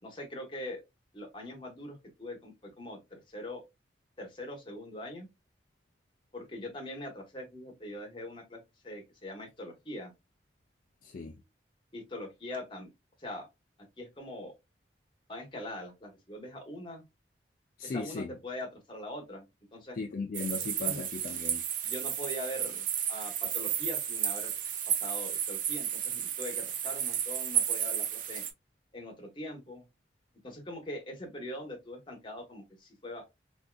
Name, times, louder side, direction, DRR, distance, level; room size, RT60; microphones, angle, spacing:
voice 1, 0.0-0.8 1.1-3.6 4.2-5.3 6.3-10.1 11.9-12.9 13.2-13.5 14.0-14.5 15.3-17.0 17.8-19.4 19.7-20.0 20.9-21.0 21.8-24.5 24.9-28.5 28.9-29.8 30.4-33.3, left 1 dB, 30° left, 1.0 m, -42 dB
voice 2, 11.0-11.4 17.8-18.3 20.0-21.6, left 4 dB, 50° left, 0.4 m, -37 dB
sound 1, 20.3-28.5, right 9 dB, 45° right, 0.5 m, -32 dB
3.6 x 2.6 x 2.2 m
head